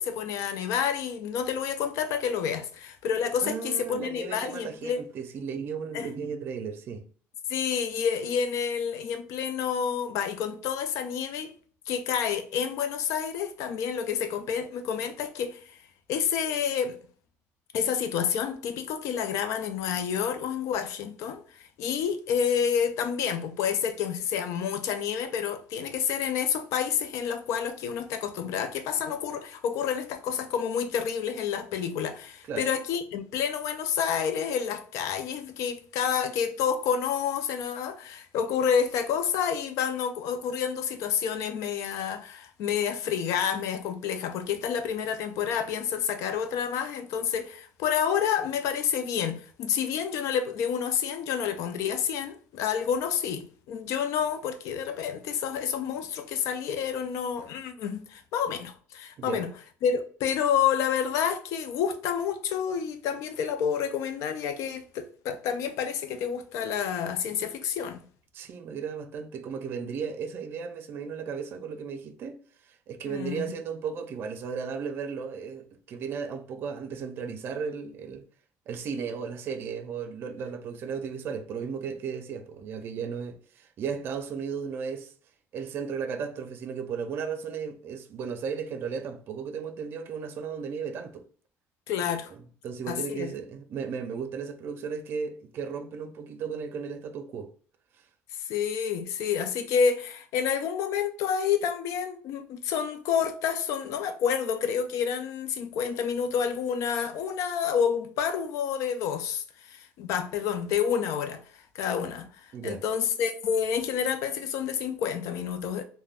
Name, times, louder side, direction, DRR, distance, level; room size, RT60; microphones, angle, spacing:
voice 1, 0.0-5.0 5.9-6.1 7.5-11.5 11.9-15.6 16.1-17.0 17.7-21.4 21.8-59.5 59.8-68.0 73.1-73.5 91.9-92.3 92.9-93.3 98.5-111.4 111.7-112.3 112.6-115.8, left 7 dB, 70° left, 0.4 m, -29 dB
voice 2, 3.4-7.0 32.5-32.7 59.2-59.4 68.3-72.4 72.9-78.2 78.7-85.1 85.5-91.2 92.3-97.5 112.5-112.8, right 6 dB, 45° right, 0.4 m, -35 dB
3.3 x 2.1 x 2.3 m
cardioid pair, 165°, 5 cm